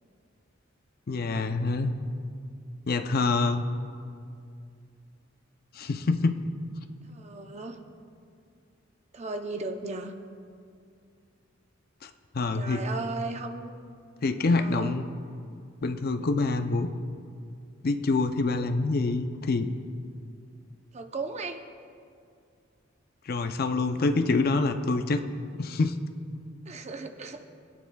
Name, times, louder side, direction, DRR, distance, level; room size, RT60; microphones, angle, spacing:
voice 1, 1.1-1.9 2.9-3.6 5.7-6.5 12.0-12.1 12.3-12.9 14.2-15.0 15.8-16.9 17.8-19.7 23.3-25.2 25.6-26.0, left 3 dB, 50° left, 8 dB, 0.5 m, -26 dB
voice 2, 7.1-7.8 9.1-10.1 12.5-13.7 14.5-15.0 20.9-21.6 26.7-27.4, right 3 dB, 35° right, 5 dB, 0.6 m, -36 dB
21.0 x 9.4 x 2.3 m, 2.3 s
head